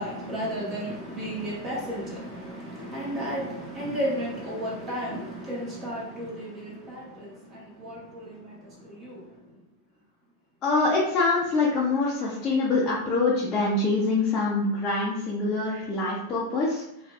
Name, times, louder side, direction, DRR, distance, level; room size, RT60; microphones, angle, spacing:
voice 1, 0.0-9.5, equal, 20° right, 1.3 m, -33 dB
voice 2, 10.6-16.8, left 3 dB, 25° left, 0.6 m, -25 dB
4.4 x 2.4 x 2.4 m
supercardioid pair, 140°, 0 cm